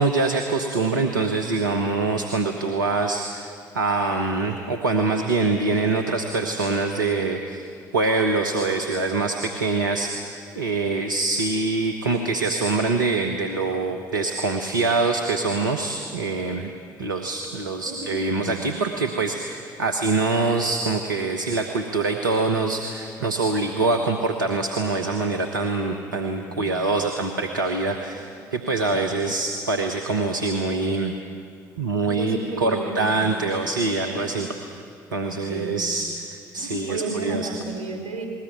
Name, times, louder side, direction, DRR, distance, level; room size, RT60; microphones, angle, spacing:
voice 1, 0.0-7.6 7.9-16.7 17.0-31.1 31.8-34.8 35.1-37.5, right 3 dB, 85° right, 4 dB, 1.1 m, -24 dB
voice 2, 17.8-18.5 26.5-26.7 28.0-28.1 28.5-29.1 32.0-33.4 34.0-34.2 35.1-35.9 36.5-38.3, right 3 dB, 70° right, 3 dB, 4.0 m, -34 dB
20.0 x 19.5 x 9.1 m, 2.3 s
figure-of-eight pair, 50°, 10 cm